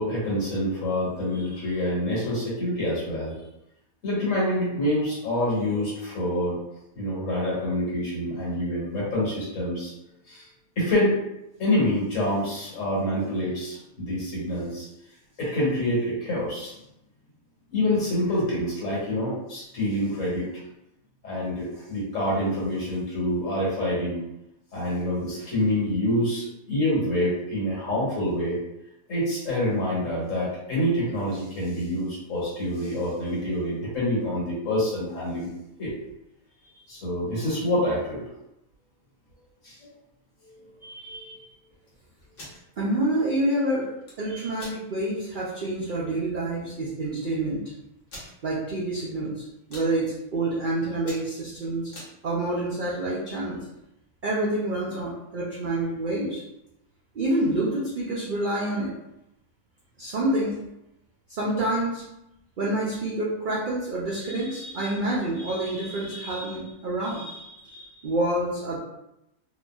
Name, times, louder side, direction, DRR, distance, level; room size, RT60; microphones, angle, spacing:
voice 1, 0.0-3.3 4.0-6.6 6.9-9.9 10.3-10.5 10.8-11.2 11.6-14.9 15.4-16.8 17.7-20.5 21.2-24.2 24.7-28.6 29.1-35.5 35.8-35.9 36.9-38.2 39.6-39.8 40.8-41.4 44.3-44.4, left 1 dB, 60° left, -7 dB, 1.5 m, -26 dB
sound 1, 42.2-42.6 43.8-44.2 44.6-44.8 45.3-45.4 45.7-46.0 46.8-46.9 47.0-47.1 48.1-48.3 49.0-49.3 49.5-49.9 50.5-50.6 50.9-52.1, left 1 dB, 45° left, 0.9 m, -43 dB
voice 2, 42.8-43.9 44.2-47.6 48.4-49.4 49.7-51.9 52.2-53.7 54.2-56.4 57.1-58.9 60.0-60.6 61.3-62.0 62.6-68.8, right 1 dB, 85° right, -6 dB, 0.4 m, -27 dB
2.9 x 2.5 x 2.2 m, 0.87 s
omnidirectional pair, 1.6 m